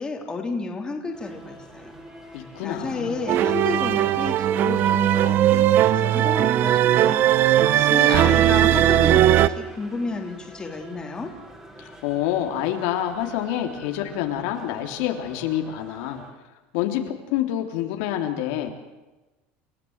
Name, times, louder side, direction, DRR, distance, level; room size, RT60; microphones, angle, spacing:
voice 1, 0.0-2.0 2.4-11.3, left 3 dB, 15° left, 2 dB, 3.4 m, -32 dB
sound 1, 1.1-16.3, right 1 dB, 10° right, 4.9 m, -46 dB
voice 2, 2.3-3.2 7.9-8.6 11.8-16.2 16.7-18.7, left 11 dB, 75° left, 4 dB, 3.3 m, -27 dB
sound 2, 3.3-9.5, right 12 dB, 45° right, 0.8 m, -18 dB
29.0 x 15.5 x 8.1 m, 1.1 s
cardioid pair, 150°, 5 cm